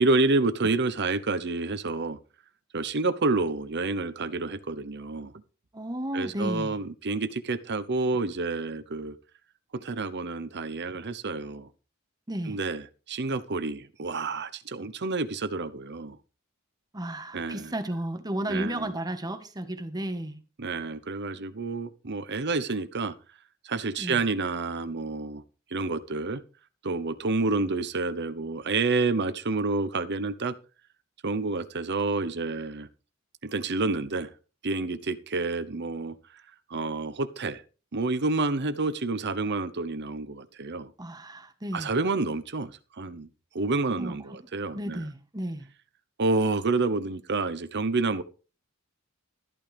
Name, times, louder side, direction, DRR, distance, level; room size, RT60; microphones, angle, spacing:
voice 1, 0.0-2.2 2.7-5.3 6.1-9.1 9.7-11.7 12.5-16.2 17.3-17.7 18.5-18.9 20.6-23.1 23.6-25.4 25.7-26.4 26.8-30.5 31.2-32.9 33.4-34.3 34.6-36.2 36.7-37.6 37.9-40.9 41.7-43.3 43.5-45.0 46.2-48.2, right 3 dB, 55° right, 0.9 m, -29 dB
voice 2, 5.7-6.8 12.3-12.6 16.9-20.4 24.0-24.2 41.0-41.9 44.0-44.4 44.7-45.7, right 1 dB, 20° right, 1.4 m, -33 dB
13.5 x 12.0 x 3.4 m
head